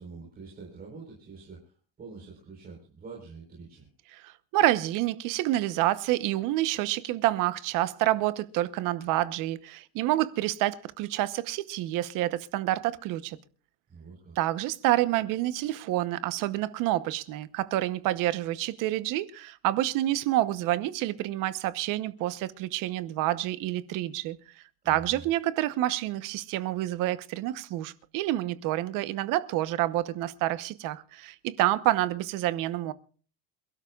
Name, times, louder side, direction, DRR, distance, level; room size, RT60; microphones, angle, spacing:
voice 1, 0.0-3.9 13.9-14.4 24.8-25.2, right 4 dB, 20° right, 4.3 m, -46 dB
voice 2, 4.5-13.4 14.4-24.4 24.9-32.9, right 15 dB, 50° right, 1.0 m, -28 dB
28.0 x 12.5 x 2.4 m
cardioid pair, 180°, 42 cm